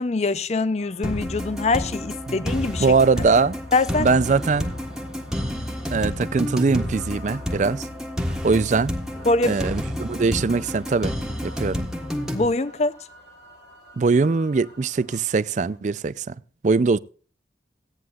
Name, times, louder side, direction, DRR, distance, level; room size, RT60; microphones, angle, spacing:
voice 1, 0.0-2.9 3.7-4.1 9.3-9.6 12.3-12.9, left 3 dB, 40° left, 0.5 m, -23 dB
sound 1, 0.8-15.8, left 1 dB, 80° left, 4.7 m, -50 dB
sound 2, 1.0-12.5, left 1 dB, 5° right, 1.5 m, -30 dB
voice 2, 2.8-3.6 4.0-4.7 5.9-7.9 8.3-8.9 9.4-11.1 11.4-11.9 14.0-16.3 16.6-17.0, right 4 dB, 40° right, 0.4 m, -21 dB
17.0 x 9.4 x 2.4 m
head